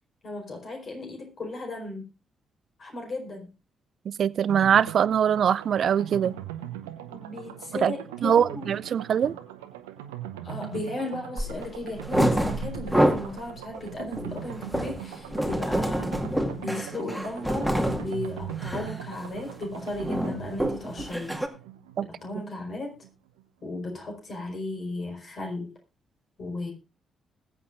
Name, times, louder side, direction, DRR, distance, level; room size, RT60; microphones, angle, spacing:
voice 1, 0.2-2.1 2.8-3.5 7.1-8.7 9.2-9.3 10.4-16.2 16.6-21.3 22.0-22.9 23.6-25.7 26.4-26.7, left 2 dB, 50° left, 4.9 m, -35 dB
voice 2, 4.1-6.4 7.8-7.9 8.2-9.3 22.0-22.1, right 8 dB, 60° right, 0.5 m, -22 dB
sound 1, 4.5-23.1 23.4-23.5 23.7-23.8, right 10 dB, 85° right, 0.8 m, -40 dB
sound 2, 11.4-11.6 11.9-13.4 13.8-18.1 18.5-18.9 19.2-19.5 19.8-21.5, equal, ahead, 2.1 m, -27 dB
20.5 x 8.6 x 2.6 m
hypercardioid pair, 40°, 0 cm